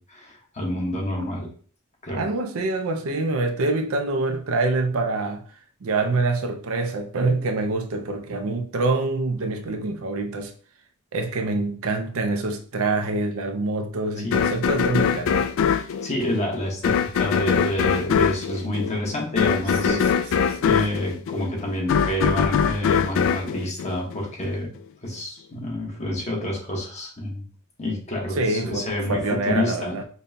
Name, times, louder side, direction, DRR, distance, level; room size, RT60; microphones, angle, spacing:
voice 1, 0.0-1.5 2.0-2.3 14.2-14.4 16.0-20.0 20.3-24.7 25.0-27.4 27.8-30.0, left 1 dB, 30° left, 1.1 m, -28 dB
voice 2, 2.1-5.4 5.8-10.5 11.1-15.5 19.8-20.7 28.4-30.0, right 3 dB, 70° right, 0.5 m, -25 dB
sound 1, 14.3-24.5, left 7 dB, 65° left, 0.3 m, -23 dB
5.2 x 2.2 x 2.7 m
head